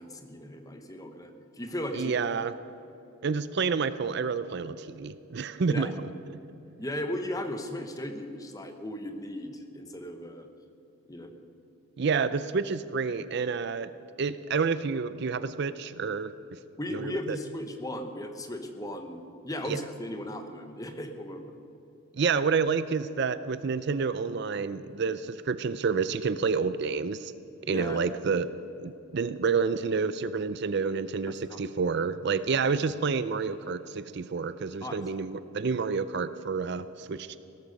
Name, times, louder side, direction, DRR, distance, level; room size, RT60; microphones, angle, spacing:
voice 1, 0.0-2.1 5.7-5.9 6.8-10.5 11.1-11.3 16.8-21.5 27.6-28.0 31.3-31.6 34.8-35.0, left 1 dB, 15° left, 6 dB, 1.0 m, -36 dB
voice 2, 1.9-2.5 3.2-6.1 12.0-13.9 14.2-16.3 16.9-17.4 19.6-19.8 22.1-27.3 27.7-28.5 28.8-37.4, right 5 dB, 50° right, 14 dB, 0.4 m, -29 dB
17.5 x 13.5 x 5.3 m, 2.9 s
head